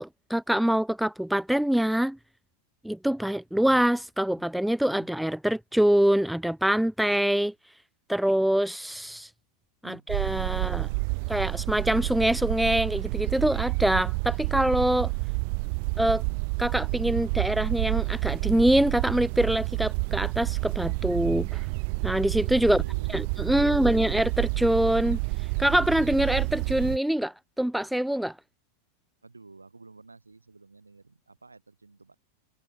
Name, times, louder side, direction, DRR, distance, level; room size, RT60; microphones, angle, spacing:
voice 1, 0.0-2.2 2.8-7.5 8.1-9.3 9.8-10.9 11.3-15.1 16.0-16.2 16.6-21.6 22.0-22.8 23.1-25.2 25.6-28.3, right 1 dB, ahead, 0.8 m, -25 dB
sound 1, 10.1-27.0, right 35 dB, 45° right, 1.0 m, -29 dB
voice 2, 10.5-11.3 22.6-23.9 29.2-32.1, right 3 dB, 80° right, 7.1 m, -52 dB
figure-of-eight pair, 90°, 0 cm